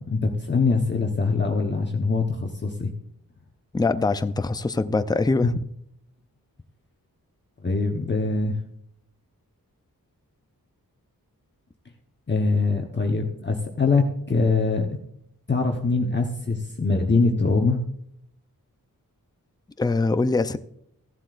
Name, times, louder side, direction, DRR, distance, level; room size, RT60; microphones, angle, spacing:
voice 1, 0.0-2.9 7.6-8.5 12.3-14.9 15.5-17.8, left 3 dB, 30° left, 2 dB, 1.0 m, -23 dB
voice 2, 3.7-5.5 19.8-20.6, left 3 dB, 10° left, 11 dB, 0.4 m, -23 dB
15.5 x 11.5 x 2.5 m, 0.73 s
wide cardioid pair, 145°, 35 cm